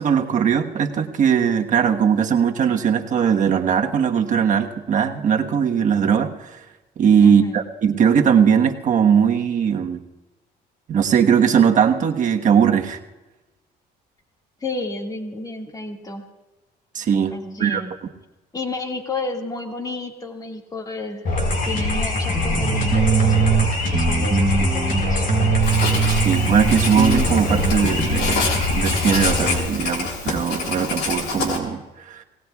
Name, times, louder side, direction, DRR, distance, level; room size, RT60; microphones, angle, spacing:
voice 1, 0.0-6.6 7.0-10.0 10.9-13.0 16.9-17.8 26.1-32.2, right 7 dB, 50° right, 3 dB, 1.3 m, -19 dB
voice 2, 7.2-7.6 14.6-16.2 17.3-17.9 18.5-21.3 21.7-23.4 23.9-25.2, left 2 dB, 20° left, 2 dB, 2.0 m, -31 dB
sound 1, 21.2-29.6, left 2 dB, 55° left, 4.7 m, -23 dB
sound 2, 22.3-23.7 23.9-27.7, right 6 dB, 20° right, 1.2 m, -21 dB
Writing, 25.6-31.6, left 4 dB, 75° left, 3.3 m, -27 dB
25.0 x 18.5 x 2.4 m, 1.1 s
cardioid pair, 110°, 17 cm